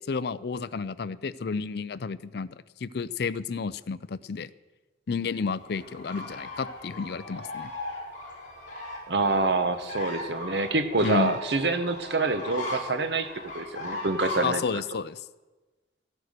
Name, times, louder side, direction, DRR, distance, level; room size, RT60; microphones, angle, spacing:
voice 1, 0.1-2.5 2.8-4.5 5.1-7.7 11.0-11.3 14.4-15.2, left 5 dB, 60° left, 17 dB, 0.5 m, -31 dB
sound 1, 5.6-14.6, left 2 dB, 45° left, 4.6 m, -38 dB
voice 2, 9.1-14.6, right 3 dB, 70° right, 9 dB, 1.1 m, -26 dB
15.0 x 9.0 x 6.6 m, 1.2 s
head